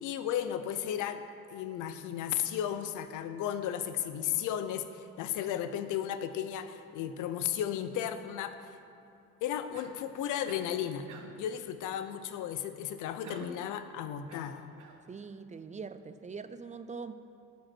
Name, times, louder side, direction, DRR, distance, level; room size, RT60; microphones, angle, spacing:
voice 1, 0.0-1.2 1.5-8.6 9.4-11.1 11.4-14.7, left 10 dB, 90° left, 10 dB, 0.6 m, -34 dB
Cough, 9.7-10.1 10.5-10.8 11.1-11.5 13.2-13.7 14.3-15.0, right 6 dB, 75° right, 0.9 m, -49 dB
voice 2, 15.1-17.1, right 5 dB, 25° right, 11 dB, 0.4 m, -42 dB
11.5 x 5.2 x 6.0 m, 2.6 s
cardioid pair, 90°, 30 cm